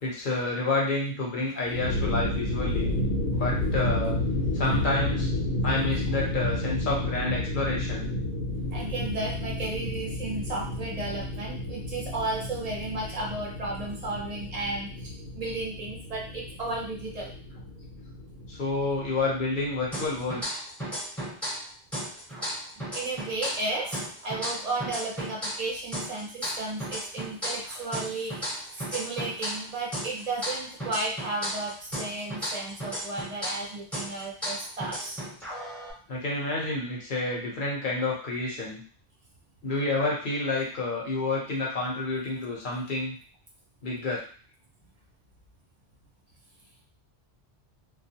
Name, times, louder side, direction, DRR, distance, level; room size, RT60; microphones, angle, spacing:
voice 1, 0.0-2.9 3.3-4.2 4.5-5.3 5.6-8.1 18.5-20.6 36.1-38.8 39.6-43.2 43.8-44.2, left 2 dB, 50° left, -3 dB, 0.8 m, -29 dB
sound 1, 1.6-20.4, left 1 dB, 85° left, 1.0 m, -31 dB
voice 2, 8.7-17.3 22.9-35.2, right 2 dB, 45° right, -3 dB, 0.6 m, -34 dB
sound 2, 19.9-21.7 21.9-25.7 25.9-29.7 29.9-33.7 33.9-35.9, equal, ahead, 0.7 m, -34 dB
2.3 x 2.2 x 2.7 m, 0.42 s
omnidirectional pair, 1.2 m